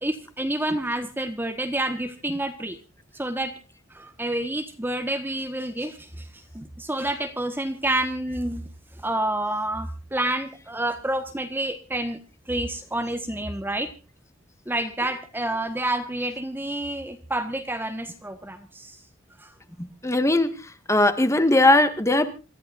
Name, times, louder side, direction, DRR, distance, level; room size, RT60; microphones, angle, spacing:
voice 1, 0.0-2.8 3.1-3.5 3.9-6.3 6.5-8.6 9.0-12.2 12.5-13.9 14.7-19.0 19.4-19.5, right 1 dB, 10° right, 7 dB, 1.3 m, -28 dB
voice 2, 19.8-22.3, left 2 dB, 15° left, 10 dB, 1.7 m, -20 dB
27.5 x 14.0 x 2.5 m, 0.32 s
head